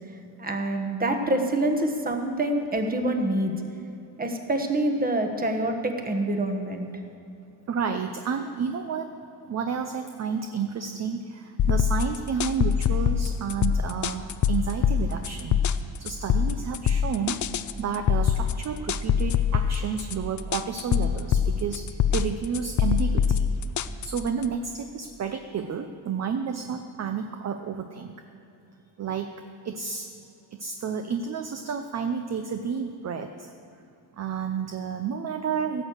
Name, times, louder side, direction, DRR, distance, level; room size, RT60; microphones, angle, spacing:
voice 1, 0.4-3.5 4.2-6.9, right 1 dB, 20° right, 4 dB, 1.2 m, -26 dB
voice 2, 7.7-9.2 9.5-15.6 16.0-17.4 17.8-23.4 24.0-28.1 29.0-30.1 30.5-33.5 34.2-35.8, right 6 dB, 35° right, 7 dB, 0.6 m, -31 dB
sound 1, 11.6-24.4, left 8 dB, 40° left, 0.4 m, -24 dB
16.5 x 6.5 x 7.8 m, 2.8 s
cardioid pair, 155°, 46 cm